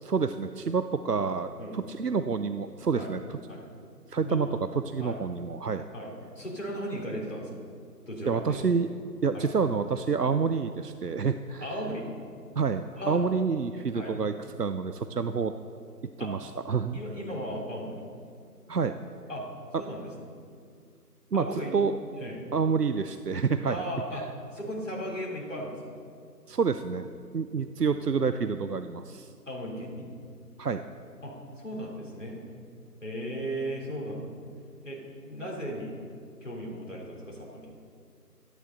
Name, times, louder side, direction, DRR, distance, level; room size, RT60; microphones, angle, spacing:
voice 1, 0.0-3.4 4.1-4.5 4.8-5.9 8.3-8.9 9.2-11.7 12.6-15.5 16.2-17.0 18.7-19.0 21.3-21.5 21.7-21.9 22.5-23.8 26.5-29.3 30.6-30.8, right 5 dB, 75° right, 10 dB, 0.7 m, -28 dB
voice 2, 5.9-7.5 8.1-8.7 9.3-9.5 11.6-12.1 12.9-13.2 13.9-14.2 16.2-16.3 16.9-18.0 19.3-19.5 19.8-20.3 21.3-21.7 22.2-22.4 23.7-24.2 24.5-26.0 29.5-30.1 31.2-32.4 33.0-34.3 34.8-35.9 36.4-37.7, equal, 50° left, -3 dB, 4.0 m, -36 dB
18.0 x 13.5 x 4.1 m, 2.3 s
figure-of-eight pair, 175°, 48 cm